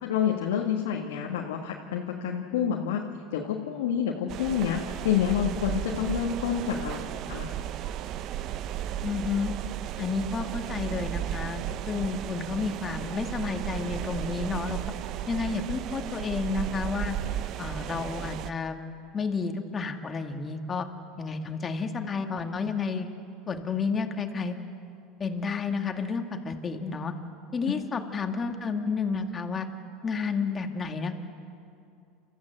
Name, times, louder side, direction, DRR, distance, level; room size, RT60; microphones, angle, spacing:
voice 1, 0.0-3.0 3.3-7.5 27.7-27.8, left 8 dB, 75° left, 0 dB, 1.6 m, -28 dB
sound 1, 4.3-18.5, right 11 dB, 55° right, 0.7 m, -34 dB
voice 2, 9.0-9.5 10.0-14.8 15.3-17.2 17.6-18.8 19.1-20.9 21.2-23.1 23.5-24.5 25.2-27.1 27.5-29.7 30.0-31.2, left 4 dB, 30° left, 5 dB, 2.1 m, -31 dB
29.5 x 14.0 x 7.8 m, 2.5 s
hypercardioid pair, 80°, 0 cm